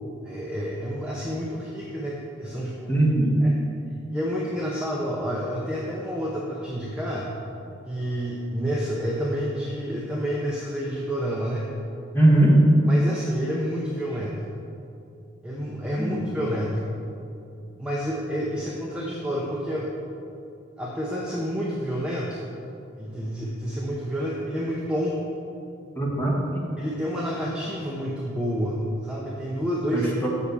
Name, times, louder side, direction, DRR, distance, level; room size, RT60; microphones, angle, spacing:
voice 1, 0.2-2.9 3.4-3.5 4.1-7.3 7.8-11.6 12.9-14.4 15.4-16.8 17.8-19.9 20.8-22.4 23.0-25.2 26.8-30.3, equal, 5° right, -4 dB, 0.7 m, -29 dB
voice 2, 2.9-3.4 12.1-12.6 16.0-16.2 25.9-26.6 29.9-30.3, right 1 dB, 10° left, -5 dB, 1.5 m, -20 dB
6.9 x 5.9 x 6.9 m, 2.6 s
head